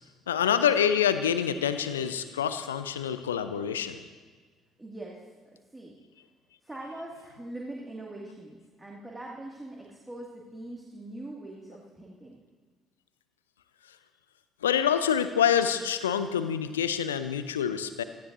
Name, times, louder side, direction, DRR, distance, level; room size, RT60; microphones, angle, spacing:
voice 1, 0.3-4.0 14.6-18.0, left 8 dB, 80° left, 12 dB, 0.6 m, -26 dB
voice 2, 4.8-6.0 6.6-12.4, right 1 dB, 15° right, -3 dB, 2.2 m, -42 dB
17.0 x 15.5 x 2.7 m, 1.5 s
figure-of-eight pair, 50°, 0 cm